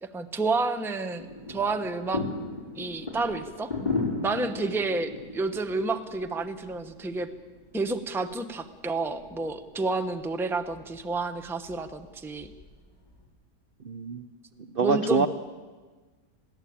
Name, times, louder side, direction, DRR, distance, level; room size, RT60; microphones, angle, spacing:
voice 1, 0.0-2.2 2.7-3.7 4.2-7.3 7.7-12.5 14.8-15.3, right 3 dB, ahead, 8 dB, 0.7 m, -30 dB
sound 1, 1.2-13.2, left 3 dB, 25° left, 4.9 m, -37 dB
voice 2, 13.8-14.3 14.6-15.3, right 4 dB, 50° right, 9 dB, 0.7 m, -26 dB
21.5 x 16.0 x 8.7 m, 1.3 s
omnidirectional pair, 1.8 m